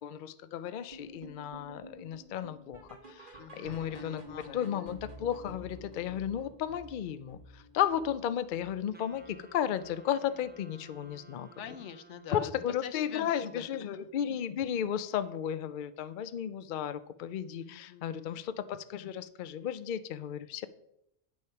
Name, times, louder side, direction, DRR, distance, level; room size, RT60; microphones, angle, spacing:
voice 1, 0.0-2.8 3.1-4.2 4.5-11.5 12.3-20.7, left 9 dB, 55° left, 13 dB, 0.6 m, -34 dB
sound 1, 0.9-10.0 10.3-10.6 10.9-11.0 11.5-11.6 12.1-12.2, equal, 45° right, 1.7 m, -51 dB
voice 2, 3.4-4.9 11.6-14.0 17.6-18.4, left 7 dB, 85° left, 10 dB, 1.1 m, -45 dB
Wind instrument woodwind instrument, 8.9-12.8, right 2 dB, 10° right, 0.6 m, -56 dB
8.8 x 6.3 x 5.7 m, 0.80 s
omnidirectional pair, 1.2 m